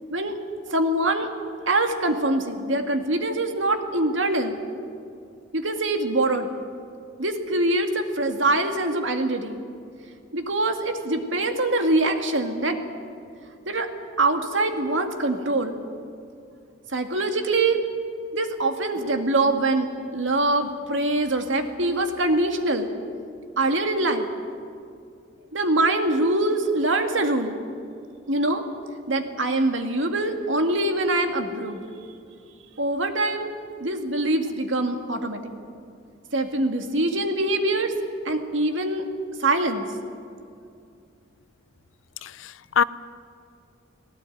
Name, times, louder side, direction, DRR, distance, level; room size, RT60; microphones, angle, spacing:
voice 1, 0.7-1.3 1.7-4.6 5.5-6.5 7.2-9.6 10.3-12.8 13.7-13.9 14.2-15.8 16.9-17.8 18.3-22.9 23.6-24.2 25.5-27.6 28.3-28.6 29.1-31.8 32.8-33.5 33.8-35.4 36.3-37.9 38.3-39.1 39.4-39.9, right 2 dB, 75° right, 5 dB, 2.1 m, -24 dB
voice 2, 42.2-42.8, left 7 dB, 85° left, 17 dB, 0.6 m, -24 dB
19.5 x 17.5 x 9.3 m, 2.4 s
head